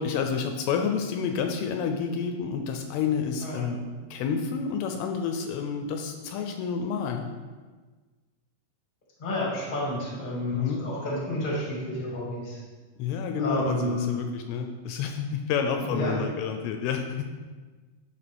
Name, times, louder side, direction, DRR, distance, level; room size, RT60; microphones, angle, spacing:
voice 1, 0.0-3.8 4.1-7.3 10.5-10.8 13.0-17.2, left 6 dB, 80° left, 5 dB, 2.4 m, -29 dB
voice 2, 9.2-12.6 13.4-14.2 15.8-16.1, left 1 dB, 25° left, -5 dB, 1.0 m, -30 dB
11.0 x 4.4 x 3.4 m, 1.3 s
omnidirectional pair, 4.6 m